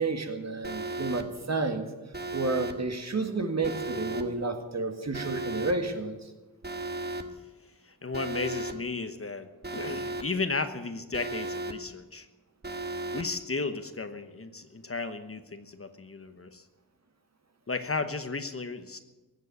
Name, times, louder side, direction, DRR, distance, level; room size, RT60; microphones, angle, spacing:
voice 1, 0.0-1.9 2.3-6.2, right 3 dB, 45° right, 6 dB, 1.9 m, -31 dB
Alarm, 0.6-1.2 2.1-2.7 3.6-4.2 5.1-5.7 6.6-7.2 8.1-8.7 9.6-10.2 11.1-11.7 12.6-13.2, right 2 dB, 25° right, 1.3 m, -35 dB
voice 2, 7.8-12.3 13.1-16.6 17.7-19.0, left 3 dB, 40° left, 9 dB, 1.0 m, -34 dB
16.0 x 7.5 x 9.6 m, 1.2 s
wide cardioid pair, 85°, 36 cm